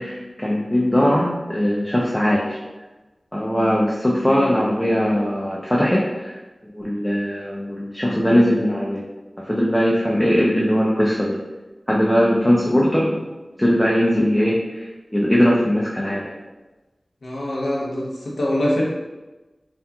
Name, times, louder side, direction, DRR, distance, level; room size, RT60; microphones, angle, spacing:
voice 1, 0.0-2.6 3.3-6.4 6.7-9.0 9.4-11.4 11.9-13.3 13.6-16.4, equal, 10° left, -4 dB, 0.4 m, -20 dB
voice 2, 17.2-18.8, left 1 dB, 85° left, -4 dB, 0.7 m, -24 dB
2.8 x 2.4 x 2.3 m, 1.1 s
wide cardioid pair, 65°, 0 cm